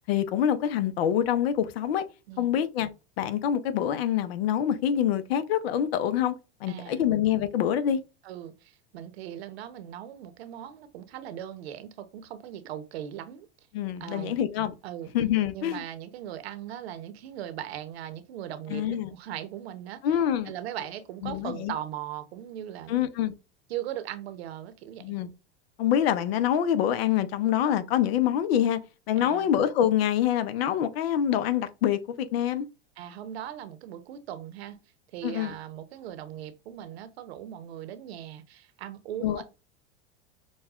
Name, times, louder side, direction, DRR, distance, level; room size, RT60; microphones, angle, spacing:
voice 1, 0.1-2.0 2.4-2.9 3.2-6.3 6.6-8.0 13.7-14.7 15.1-15.8 18.7-19.1 20.0-20.5 21.2-21.7 22.9-23.3 25.0-25.3 25.8-28.8 29.1-32.7 35.2-35.5 39.2-39.4, left 10 dB, 75° left, 0.7 m, -25 dB
voice 2, 6.7-7.1 8.2-13.5 14.0-14.4 14.8-15.1 15.5-23.1 23.7-25.2 29.2-29.5 33.0-34.8 35.1-39.4, right 11 dB, 80° right, 0.8 m, -39 dB
6.3 x 2.3 x 2.3 m
hypercardioid pair, 105°, 31 cm